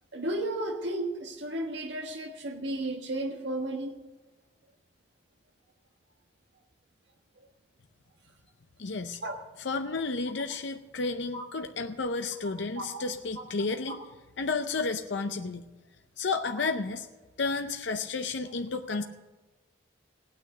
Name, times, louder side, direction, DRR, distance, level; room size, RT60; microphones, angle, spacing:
voice 1, 0.1-4.0 9.2-9.4 11.3-11.4 12.8-13.0 13.9-14.0, right 1 dB, 70° right, 3 dB, 1.5 m, -33 dB
voice 2, 8.8-9.2 9.6-14.0 14.4-15.7 16.2-17.1 17.4-19.0, left 3 dB, 70° left, 6 dB, 0.7 m, -32 dB
16.0 x 9.4 x 6.7 m, 1.2 s
head